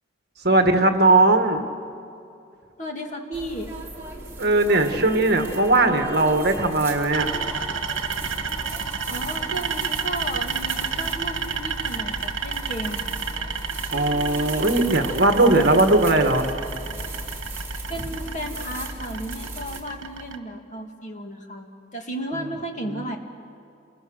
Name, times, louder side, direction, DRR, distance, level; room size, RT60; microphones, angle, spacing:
voice 1, 0.4-1.6 4.4-7.3 13.9-16.5 22.9-23.0, right 2 dB, 50° right, 5 dB, 1.6 m, -19 dB
voice 2, 2.8-3.7 9.1-13.2 17.9-23.2, right 1 dB, 35° left, 2 dB, 2.3 m, -34 dB
sound 1, 3.3-19.8, right 2 dB, 10° right, 2.9 m, -36 dB
sound 2, 7.1-20.4, right 6 dB, 65° right, 1.5 m, -31 dB
28.5 x 21.5 x 6.4 m, 2.5 s
head